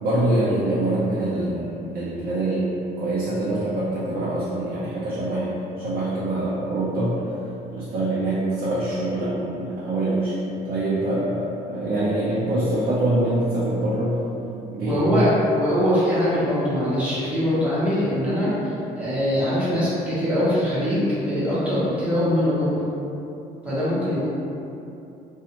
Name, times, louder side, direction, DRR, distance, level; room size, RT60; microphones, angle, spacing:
voice 1, 0.0-7.2 7.7-10.4 10.7-14.2 14.7-15.3, right 1 dB, 60° right, -9 dB, 0.6 m, -24 dB
voice 2, 14.8-22.8 23.6-24.3, equal, 10° right, -12 dB, 1.1 m, -22 dB
2.5 x 2.3 x 2.9 m, 2.7 s
cardioid pair, 110°, 17 cm